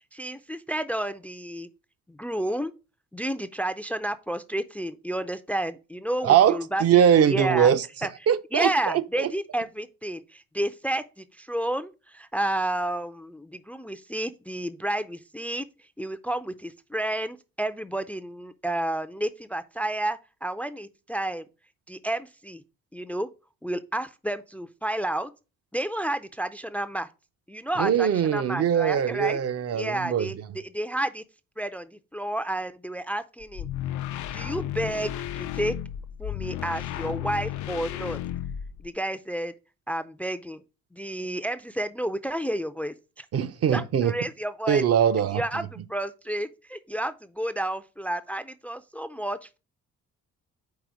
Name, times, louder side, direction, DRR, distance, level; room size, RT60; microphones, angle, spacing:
voice 1, 0.1-1.7 2.1-2.7 3.1-6.8 7.2-7.7 8.0-8.1 8.5-15.7 16.0-21.5 21.9-22.6 22.9-23.3 23.6-25.3 25.7-27.1 27.5-29.4 29.7-31.2 31.6-33.7 34.3-35.7 36.2-38.2 38.8-39.5 39.9-40.6 40.9-43.3 43.7-44.8 45.3-49.6, right 1 dB, 5° left, 0.4 m, -31 dB
voice 2, 6.2-7.8 8.3-9.3 27.8-30.3 43.3-44.1 44.7-45.7, right 9 dB, 55° right, 0.6 m, -22 dB
sound 1, 33.4-38.9, left 11 dB, 75° left, 0.5 m, -33 dB
4.8 x 4.1 x 5.0 m
cardioid pair, 90°, 30 cm